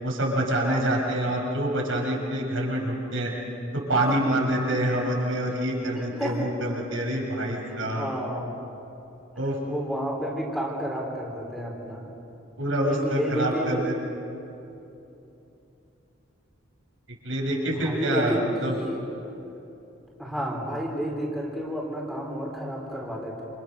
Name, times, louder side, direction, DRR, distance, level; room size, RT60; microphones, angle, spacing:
voice 1, 0.0-3.3 3.7-8.1 9.4-9.6 12.6-13.9 17.2-18.7, right 1 dB, 70° right, -2 dB, 7.1 m, -26 dB
voice 2, 7.9-8.5 9.7-12.1 12.8-14.0 17.7-19.3 20.2-23.4, equal, ahead, -2 dB, 4.0 m, -31 dB
29.0 x 29.0 x 6.6 m, 2.9 s
head